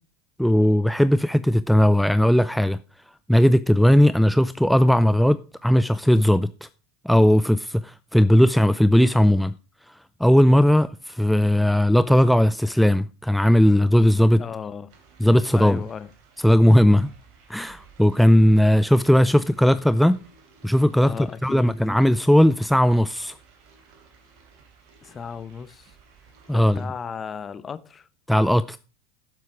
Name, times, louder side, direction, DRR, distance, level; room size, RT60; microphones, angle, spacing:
voice 1, 0.4-2.8 3.3-6.7 7.0-9.5 9.9-14.4 15.2-15.8 16.4-17.1 17.5-20.2 20.6-21.1 21.4-23.3 26.5-26.8 28.3-28.8, equal, ahead, 0.4 m, -18 dB
voice 2, 14.4-14.9 15.5-16.1 21.0-21.8 25.0-25.9 26.5-28.1, left 6 dB, 25° left, 0.9 m, -35 dB
sound 1, 14.9-26.9, right 5 dB, 55° right, 3.5 m, -55 dB
11.0 x 7.5 x 4.7 m
hypercardioid pair, 85°, 0 cm